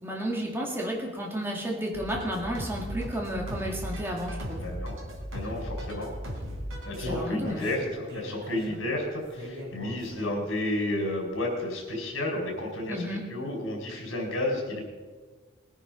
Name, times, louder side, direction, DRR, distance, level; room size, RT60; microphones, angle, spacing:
voice 1, 0.0-4.6 7.1-7.7 12.9-13.4, equal, 10° right, -1 dB, 2.3 m, -32 dB
sound 1, 1.9-7.1, equal, 80° right, 3.8 m, -37 dB
voice 2, 4.6-5.0 5.3-6.1 6.8-13.0 13.3-14.8, left 1 dB, 70° left, 0 dB, 5.0 m, -31 dB
Human voice, 6.5-10.6 10.9-11.0 11.5-11.6, equal, 55° right, 5.1 m, -39 dB
21.0 x 10.0 x 5.2 m, 1.4 s
head